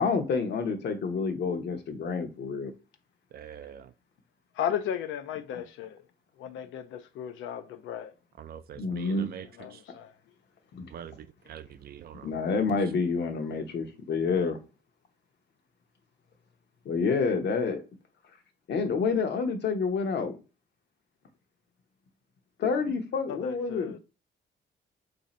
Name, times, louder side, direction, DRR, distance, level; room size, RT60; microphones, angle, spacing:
voice 1, 0.0-2.7 5.5-5.6 8.7-9.3 10.7-10.9 12.2-14.6 16.8-17.8 18.7-20.3 22.6-24.0, left 4 dB, 60° left, 0.8 m, -28 dB
voice 2, 3.3-3.9 8.4-9.5 9.7-9.8 10.9-12.3, right 9 dB, 50° right, 0.4 m, -44 dB
voice 3, 4.5-6.0 6.4-8.1 9.6-10.1 23.3-24.0, left 9 dB, 75° left, 0.4 m, -35 dB
2.7 x 2.5 x 4.1 m
cardioid pair, 90°, 20 cm